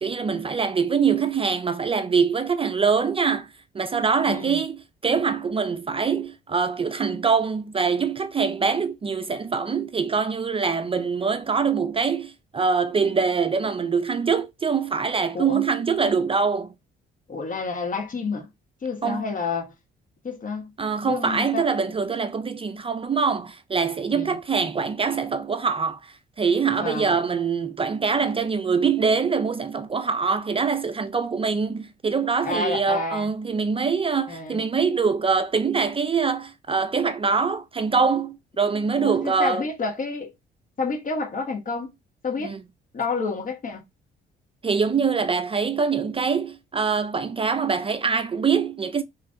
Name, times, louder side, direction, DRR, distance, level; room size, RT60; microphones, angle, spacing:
voice 1, 0.0-3.5 3.7-16.7 19.0-19.2 20.8-39.6 42.4-42.6 44.6-49.0, right 5 dB, 30° right, 0.4 m, -24 dB
voice 2, 4.3-4.6 15.3-15.6 17.3-18.5 18.8-19.7 20.2-20.7 21.0-21.6 24.1-24.4 26.8-27.1 32.4-33.3 34.3-34.6 39.0-40.3 40.8-41.9 42.2-42.6 42.9-43.8, left 4 dB, 40° left, 1.5 m, -29 dB
3.7 x 3.1 x 3.8 m
cardioid pair, 90°, 20 cm